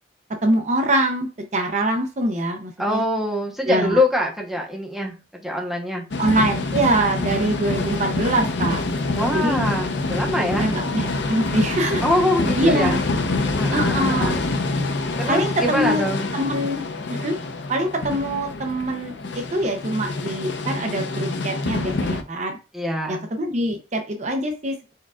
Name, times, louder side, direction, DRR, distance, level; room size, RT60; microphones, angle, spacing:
voice 1, 0.4-3.0 3.7-4.0 6.2-8.8 9.3-9.6 10.4-12.0 12.6-13.0 13.7-14.4 15.3-16.0 16.3-16.8 17.1-17.4 17.7-22.6 23.1-24.9, right 1 dB, 40° right, 4 dB, 0.6 m, -24 dB
voice 2, 2.8-6.0 9.1-10.7 12.0-13.0 13.6-14.4 15.2-16.3 22.7-23.3, left 1 dB, ahead, -1 dB, 1.0 m, -24 dB
sound 1, 6.1-22.2, left 2 dB, 85° left, 0.6 m, -26 dB
4.6 x 4.5 x 2.4 m, 0.31 s
head